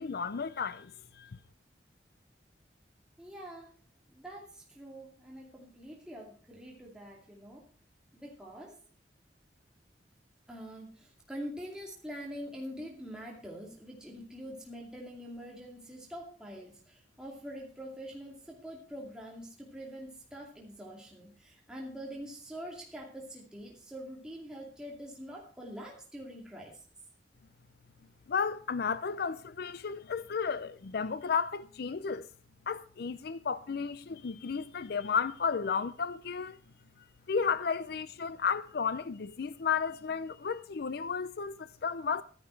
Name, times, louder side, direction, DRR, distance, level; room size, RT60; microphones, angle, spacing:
voice 1, 0.0-1.4 28.3-32.3 32.7-36.6 37.3-42.2, left 6 dB, 60° left, 0.5 m, -33 dB
voice 2, 3.2-3.7 4.1-7.6 8.1-8.7 10.5-26.8, equal, 5° right, 2.4 m, -45 dB
13.0 x 10.5 x 4.5 m
head